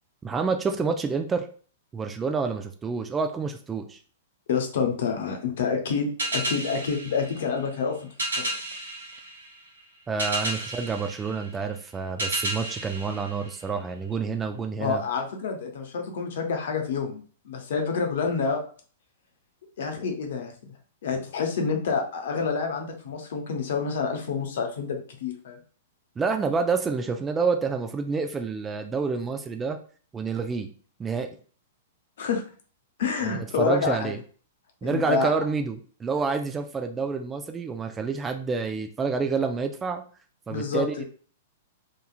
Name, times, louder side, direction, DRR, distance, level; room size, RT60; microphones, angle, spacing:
voice 1, 0.2-1.5 1.9-4.0 10.1-15.0 26.2-29.8 30.1-30.7 31.0-31.3 33.2-34.2 34.8-40.0 40.5-41.0, right 5 dB, 15° right, 5 dB, 0.3 m, -28 dB
voice 2, 4.5-8.0 8.4-8.5 14.8-18.6 19.8-20.7 21.0-25.6 32.2-32.4 33.0-34.1 34.8-35.3 40.5-41.0, left 5 dB, 65° left, 3 dB, 0.7 m, -28 dB
sound 1, 6.2-14.1, right 1 dB, 80° right, 1.1 m, -33 dB
2.9 x 2.4 x 2.4 m, 0.42 s
hypercardioid pair, 110°, 0 cm